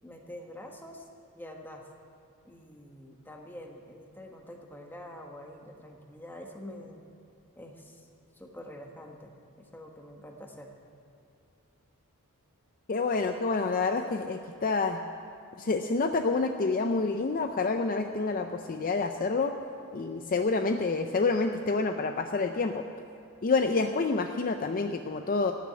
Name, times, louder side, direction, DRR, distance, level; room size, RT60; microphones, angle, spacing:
voice 1, 0.0-1.0 1.3-1.8 2.4-7.1 7.6-8.1 8.4-9.3 9.6-10.7, left 1 dB, 10° left, 1 dB, 1.3 m, -46 dB
voice 2, 12.9-15.0 15.6-19.5 19.9-22.8 23.4-25.5, left 3 dB, 40° left, 6 dB, 0.5 m, -28 dB
14.5 x 7.1 x 9.8 m, 2.6 s
head